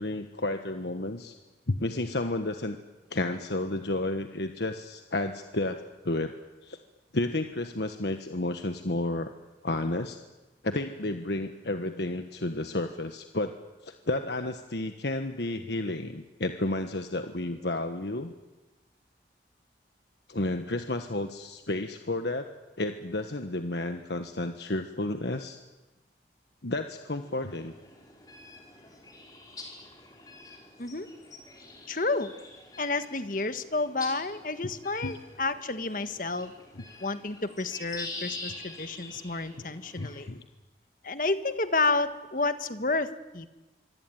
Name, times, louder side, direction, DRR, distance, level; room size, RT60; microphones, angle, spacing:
voice 1, 0.0-1.4 1.7-2.8 3.1-6.4 6.6-6.8 7.1-9.3 9.6-10.2 10.6-13.6 13.8-18.3 20.3-22.5 22.8-25.6 26.6-27.7 34.6-34.7 35.0-35.2 40.0-40.4, left 2 dB, 70° left, 7 dB, 1.4 m, -31 dB
sound 1, 27.2-40.3, left 3 dB, 20° left, 4.9 m, -45 dB
voice 2, 31.9-32.3 32.8-36.5 37.0-40.3 41.0-43.5, left 3 dB, 45° left, 10 dB, 1.5 m, -30 dB
25.0 x 25.0 x 9.4 m, 1.1 s
head